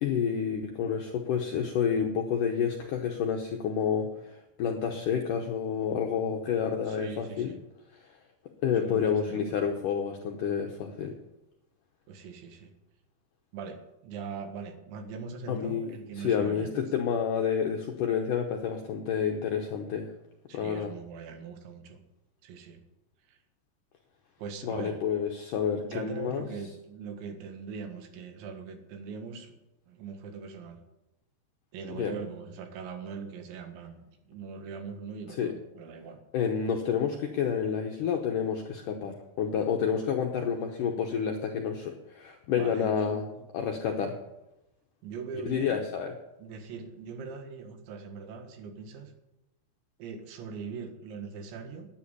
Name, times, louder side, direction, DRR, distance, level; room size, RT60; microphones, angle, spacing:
voice 1, 0.0-7.5 7.9-8.1 8.6-11.1 15.5-20.1 20.5-20.9 24.6-26.5 31.9-32.2 35.3-35.5 36.3-43.2 43.5-44.2 45.5-46.2, left 7 dB, 80° left, 3 dB, 1.9 m, -29 dB
voice 2, 6.9-7.6 8.7-9.6 12.1-12.7 13.5-16.8 20.5-22.0 22.4-22.8 23.3-23.4 24.4-25.0 25.8-29.6 29.9-30.8 31.7-36.2 42.5-43.5 45.0-45.8 46.4-49.1 50.0-51.9, right 5 dB, 85° right, 5 dB, 4.0 m, -41 dB
11.5 x 10.0 x 8.2 m, 0.92 s
omnidirectional pair, 5.2 m